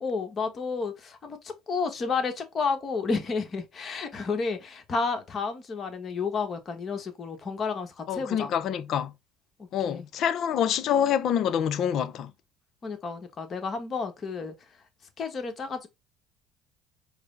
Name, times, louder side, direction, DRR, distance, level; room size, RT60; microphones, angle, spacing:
voice 1, 0.0-8.5 9.8-10.0 12.8-14.5 15.2-15.9, left 4 dB, 40° left, 1.1 m, -31 dB
voice 2, 8.1-9.1 9.7-12.3, left 9 dB, 55° left, 0.5 m, -26 dB
4.7 x 2.0 x 3.7 m
supercardioid pair, 90°, 0 cm